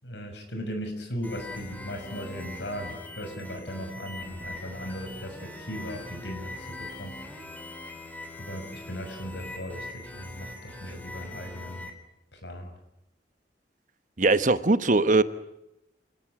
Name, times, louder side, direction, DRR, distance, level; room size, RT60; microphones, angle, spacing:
voice 1, 0.0-7.2 8.4-11.9 12.3-12.7, equal, 90° left, 5 dB, 6.5 m, -37 dB
sound 1, 1.2-11.9, left 2 dB, 10° left, 3.3 m, -42 dB
voice 2, 14.2-15.2, right 3 dB, 45° right, 12 dB, 1.1 m, -20 dB
28.0 x 17.0 x 9.9 m, 0.86 s
head